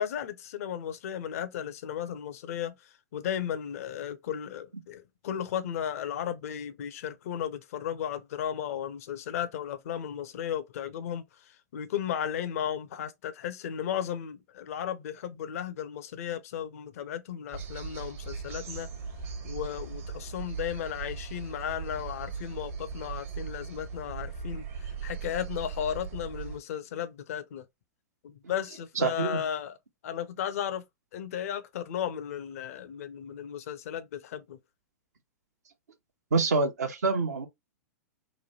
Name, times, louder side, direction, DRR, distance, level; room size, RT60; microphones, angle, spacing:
voice 1, 0.0-18.9 19.4-27.6 28.2-29.8 30.0-30.8 31.1-34.6, left 9 dB, 60° left, 0.5 m, -35 dB
sound 1, 17.5-26.6, right 5 dB, 55° right, 1.0 m, -39 dB
voice 2, 29.0-29.4 36.3-37.5, right 4 dB, 75° right, 0.8 m, -26 dB
3.1 x 2.2 x 2.7 m
hypercardioid pair, 105°, 9 cm